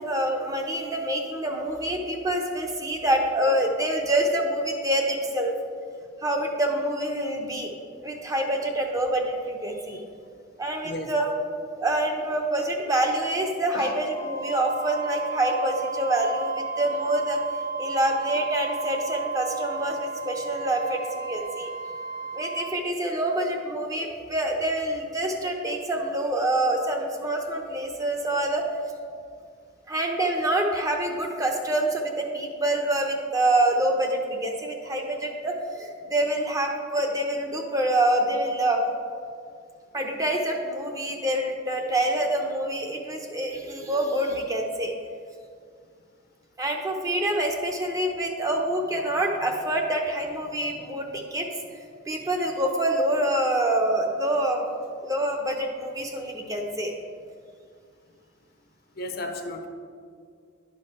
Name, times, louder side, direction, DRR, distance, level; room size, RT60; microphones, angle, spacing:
voice 1, 0.0-5.5 6.2-7.7 8.0-10.0 10.6-11.3 11.8-17.4 17.8-21.7 22.3-28.6 29.9-38.8 39.9-44.9 46.6-51.5 52.1-54.6 55.0-56.9, right 1 dB, 20° right, 2 dB, 0.7 m, -26 dB
Wind instrument woodwind instrument, 14.1-22.7, right 4 dB, 75° right, 1.4 m, -34 dB
voice 2, 59.0-59.7, left 2 dB, 55° left, 5 dB, 0.7 m, -33 dB
10.5 x 5.2 x 4.2 m, 2.2 s
head